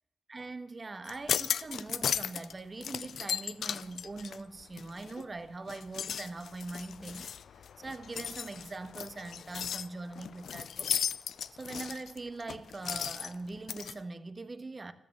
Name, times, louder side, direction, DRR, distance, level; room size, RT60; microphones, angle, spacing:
voice 1, 0.3-7.3 7.6-10.9 11.5-14.9, right 3 dB, 35° right, 1.5 m, -42 dB
sound 1, 1.0-2.5 2.8-5.3 5.7-13.9, left 8 dB, 80° left, 0.5 m, -36 dB
14.5 x 13.0 x 7.6 m
cardioid pair, 75°, 0 cm